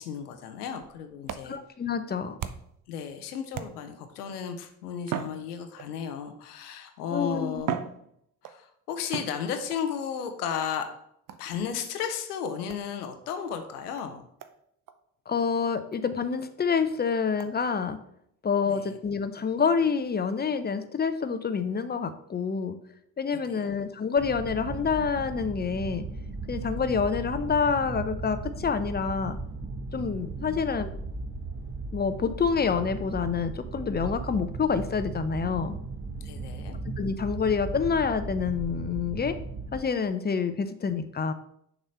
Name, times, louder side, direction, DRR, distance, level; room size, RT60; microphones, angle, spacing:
voice 1, 0.0-1.6 2.9-7.8 8.4-10.9 11.4-14.2 18.7-18.9 23.3-23.7 30.5-30.6 36.2-36.8, left 7 dB, 85° left, 7 dB, 0.7 m, -34 dB
sound 1, 0.7-2.9 3.5-4.1 5.0-6.1 7.0-7.1 7.6-8.6 9.1-9.8 11.3-11.6 12.7-12.9 13.5-13.6 14.0-14.1 14.4-14.6 14.9-15.0 15.4-15.5 15.9-16.0 16.4-16.5 17.4-17.5, right 8 dB, 45° right, 0.6 m, -37 dB
voice 2, 1.4-2.4 7.1-7.6 15.3-18.0 18.4-22.8 23.2-26.0 26.5-29.4 29.9-30.9 31.9-35.7 37.0-39.4 39.7-41.3, left 5 dB, 20° left, 10 dB, 0.6 m, -27 dB
sound 2, 24.2-39.8, right 3 dB, 25° right, 1.3 m, -37 dB
6.5 x 3.0 x 5.4 m, 0.71 s
hypercardioid pair, 45°, 45 cm